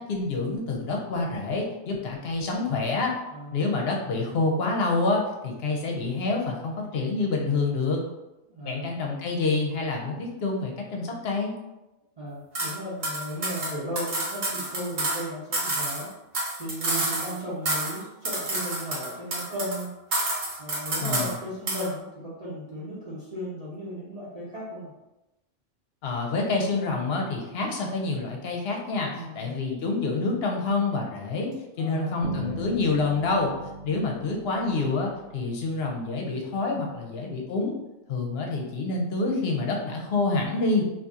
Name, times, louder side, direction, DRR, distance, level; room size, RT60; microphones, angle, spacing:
voice 1, 0.0-3.1 3.5-8.0 8.7-11.5 21.0-21.3 26.0-31.5 31.8-33.5 33.8-37.7 38.1-40.8, left 3 dB, 60° left, 0 dB, 0.8 m, -27 dB
voice 2, 3.3-3.7 8.5-8.9 12.2-16.1 16.6-19.9 20.6-24.9 29.1-29.6 31.8-32.2 32.5-32.6, equal, 35° right, -8 dB, 0.7 m, -36 dB
sound 1, 12.5-12.7 13.0-15.2 15.5-17.4 17.7-18.0 18.2-19.8 20.1-21.4 21.7-21.9, right 2 dB, 55° right, 1.0 m, -29 dB
Bass guitar, 32.2-36.0, right 1 dB, 90° right, 1.0 m, -39 dB
2.7 x 2.5 x 3.5 m, 0.97 s
omnidirectional pair, 1.3 m